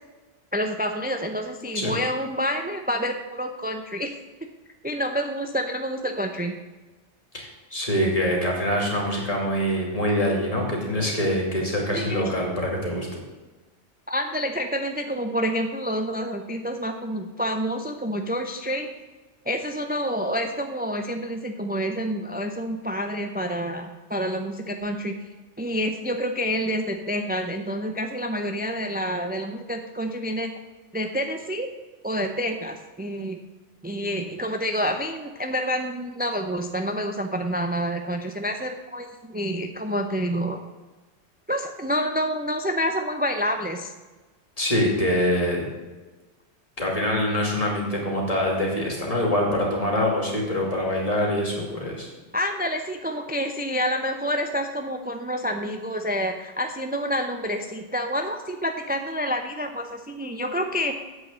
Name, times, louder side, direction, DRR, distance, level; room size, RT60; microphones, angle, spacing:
voice 1, 0.5-4.2 4.8-6.6 11.9-12.3 14.1-18.9 19.5-25.3 25.6-30.5 30.9-31.7 32.0-33.4 33.8-40.6 41.5-43.9 52.3-61.0, equal, 15° right, 5 dB, 0.3 m, -28 dB
voice 2, 7.3-13.2 44.6-45.7 46.8-52.1, left 1 dB, 30° left, -2 dB, 2.6 m, -24 dB
8.1 x 6.4 x 7.4 m, 1.2 s
omnidirectional pair, 1.3 m